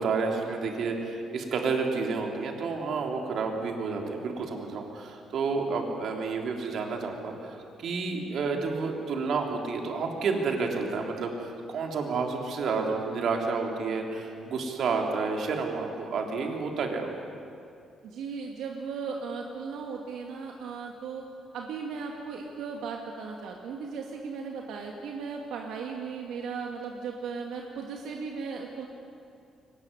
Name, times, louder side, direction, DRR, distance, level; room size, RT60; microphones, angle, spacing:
voice 1, 0.0-17.1, right 4 dB, 60° right, 2 dB, 3.5 m, -30 dB
voice 2, 18.0-21.3 21.5-28.9, right 5 dB, 85° right, 1 dB, 2.2 m, -37 dB
23.0 x 19.5 x 9.9 m, 2.5 s
cardioid pair, 140°, 0 cm